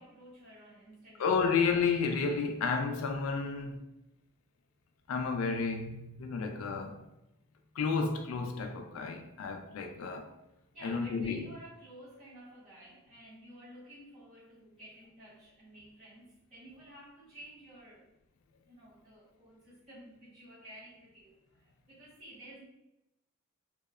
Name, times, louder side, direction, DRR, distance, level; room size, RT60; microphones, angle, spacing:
voice 1, 0.0-1.3 10.7-18.1 18.7-22.6, right 1 dB, 35° right, 0.6 m, -53 dB
voice 2, 1.2-3.8 5.1-7.0 7.8-10.3 10.8-11.5, left 5 dB, 75° left, 0.3 m, -31 dB
2.7 x 2.0 x 2.3 m
head